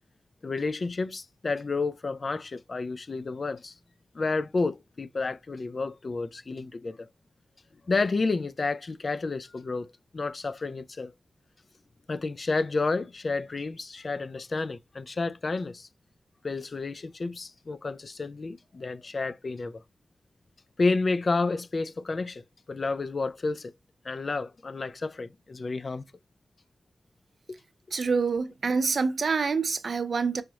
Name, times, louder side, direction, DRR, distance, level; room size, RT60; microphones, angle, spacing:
voice 1, 0.4-3.8 4.1-7.1 7.9-11.1 12.1-15.9 16.4-19.8 20.8-23.7 24.0-26.0 27.5-27.6, left 3 dB, 60° left, 0.3 m, -30 dB
voice 2, 27.9-30.4, right 5 dB, 70° right, 0.3 m, -26 dB
4.7 x 2.0 x 2.8 m
cardioid pair, 50°, 0 cm